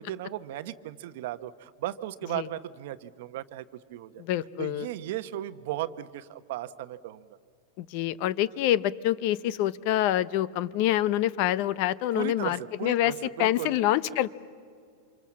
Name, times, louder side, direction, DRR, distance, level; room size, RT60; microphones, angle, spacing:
voice 1, 0.0-4.2 4.6-7.4 12.1-13.7, right 13 dB, 60° right, 13 dB, 0.9 m, -36 dB
voice 2, 4.2-4.9 7.8-13.1 13.4-14.3, left 13 dB, 45° left, 19 dB, 0.7 m, -26 dB
28.0 x 26.0 x 7.5 m, 2.3 s
supercardioid pair, 160°, 0 cm